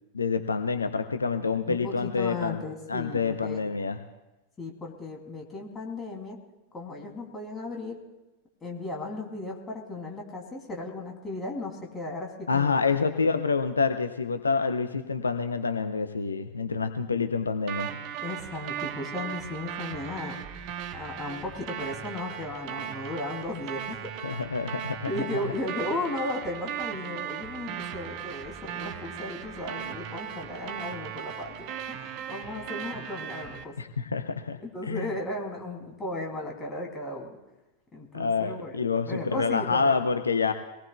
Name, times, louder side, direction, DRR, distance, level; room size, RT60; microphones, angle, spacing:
voice 1, 0.1-2.6 2.9-4.0 12.5-17.9 24.2-25.3 33.8-35.1 38.1-40.5, left 5 dB, 75° left, 8 dB, 0.6 m, -27 dB
voice 2, 1.7-3.6 4.6-6.4 6.7-8.0 8.6-12.8 18.2-20.4 20.9-24.0 25.1-33.7 34.6-37.3 37.9-39.9, left 2 dB, 20° left, 0 dB, 2.9 m, -36 dB
sound 1, 17.7-33.6, right 9 dB, 45° right, 0.9 m, -37 dB
23.5 x 18.5 x 2.3 m, 1.0 s
figure-of-eight pair, 90°, 0 cm